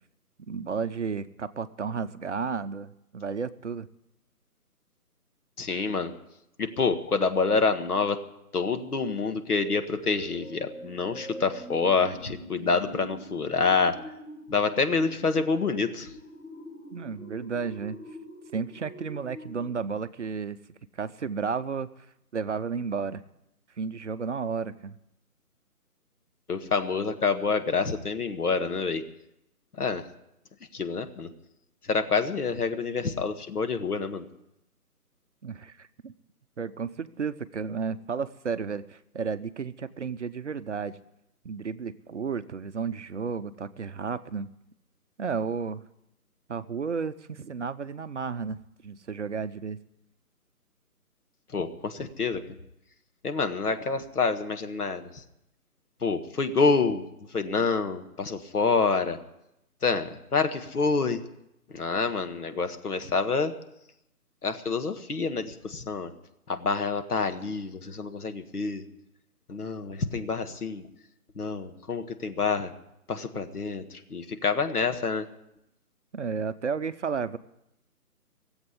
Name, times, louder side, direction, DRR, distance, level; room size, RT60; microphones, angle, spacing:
voice 1, 0.5-3.9 16.9-18.0 18.5-20.6 20.9-21.9 22.3-23.2 23.8-25.0 35.4-36.1 36.6-41.0 41.4-44.5 45.2-45.8 46.5-49.8 76.1-77.4, right 5 dB, 50° right, 13 dB, 0.7 m, -32 dB
voice 2, 5.6-6.1 6.6-8.2 8.5-13.9 14.5-16.1 26.5-29.0 29.7-30.1 30.7-31.3 31.8-34.3 51.5-52.4 53.2-55.2 56.0-57.0 57.3-59.2 59.8-61.2 61.7-63.6 64.4-66.1 66.5-68.9 69.5-70.9 71.4-72.7 73.1-75.3, left 4 dB, 75° left, 8 dB, 1.7 m, -27 dB
sound 1, 9.2-19.9, equal, 50° left, 4.6 m, -45 dB
17.5 x 8.0 x 9.7 m, 0.84 s
figure-of-eight pair, 160°, 46 cm